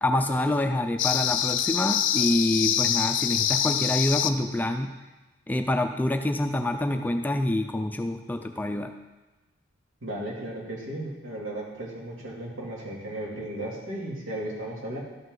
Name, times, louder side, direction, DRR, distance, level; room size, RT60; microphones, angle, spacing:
voice 1, 0.0-4.9 5.5-8.9, left 1 dB, 10° left, 6 dB, 0.4 m, -26 dB
sound 1, 1.0-4.3, left 10 dB, 65° left, 0.5 m, -25 dB
voice 2, 10.0-15.0, right 1 dB, 85° right, -5 dB, 2.6 m, -35 dB
12.5 x 5.6 x 3.8 m, 1.1 s
head